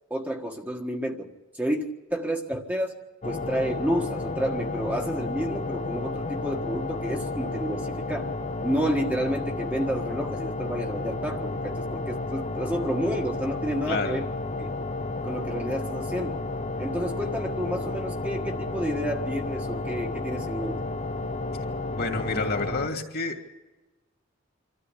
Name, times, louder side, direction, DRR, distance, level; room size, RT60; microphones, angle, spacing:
voice 1, 0.1-1.8 2.1-3.0 3.2-8.3 8.6-14.3 14.6-14.7 15.2-16.4 16.8-20.8, equal, 10° right, 1 dB, 1.5 m, -30 dB
sound 1, 3.2-22.9, left 2 dB, 35° left, 0.7 m, -32 dB
voice 2, 21.9-23.4, left 3 dB, 50° left, 4 dB, 2.4 m, -29 dB
26.5 x 13.5 x 8.4 m, 1.2 s
head